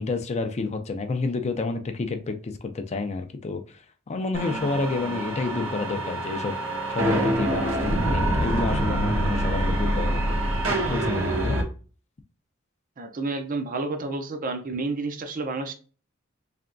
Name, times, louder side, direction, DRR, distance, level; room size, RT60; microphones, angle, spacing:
voice 1, 0.0-3.8 4.1-10.4 10.7-11.6, left 3 dB, 30° left, 0.4 m, -29 dB
sound 1, 4.3-11.6, right 1 dB, 80° right, 1.1 m, -26 dB
voice 2, 13.0-15.7, right 3 dB, 40° right, 0.5 m, -30 dB
3.8 x 3.3 x 2.5 m
head